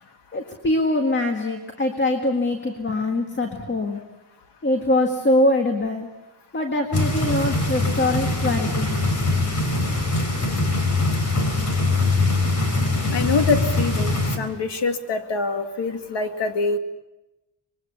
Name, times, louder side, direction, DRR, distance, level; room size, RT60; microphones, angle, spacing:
voice 1, 0.3-4.0 4.6-6.1 6.5-9.0, left 1 dB, 25° left, 4 dB, 1.9 m, -23 dB
sound 1, 6.9-14.4, left 2 dB, 45° left, 4.0 m, -22 dB
voice 2, 13.1-16.8, left 4 dB, 85° left, 5 dB, 2.3 m, -25 dB
24.5 x 22.0 x 7.1 m, 0.99 s
wide cardioid pair, 150°, 41 cm